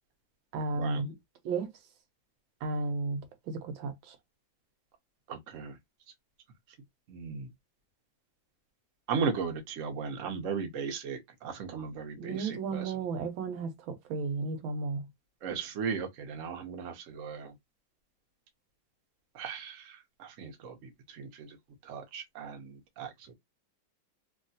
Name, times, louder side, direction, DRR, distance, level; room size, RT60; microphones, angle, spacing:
voice 1, 0.5-1.1 1.4-1.7 2.6-4.2 12.2-15.1, right 3 dB, 85° right, 1.6 m, -34 dB
voice 2, 5.3-5.8 7.1-7.5 9.1-12.9 15.4-17.5 19.3-21.6 21.8-23.3, right 5 dB, 55° right, 0.9 m, -37 dB
3.5 x 2.4 x 2.7 m
omnidirectional pair, 2.2 m